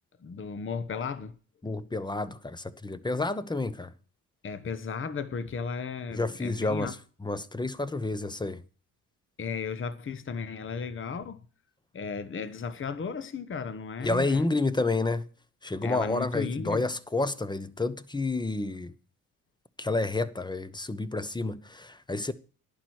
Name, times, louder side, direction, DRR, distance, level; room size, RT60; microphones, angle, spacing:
voice 1, 0.2-1.3 4.4-6.9 9.4-11.5 11.9-14.4 15.8-16.9, left 5 dB, 30° left, 1.1 m, -35 dB
voice 2, 1.6-3.9 6.1-8.6 14.0-15.3 15.6-18.9 19.8-22.3, left 2 dB, 10° left, 1.0 m, -30 dB
11.5 x 9.7 x 4.6 m
supercardioid pair, 65°, 39 cm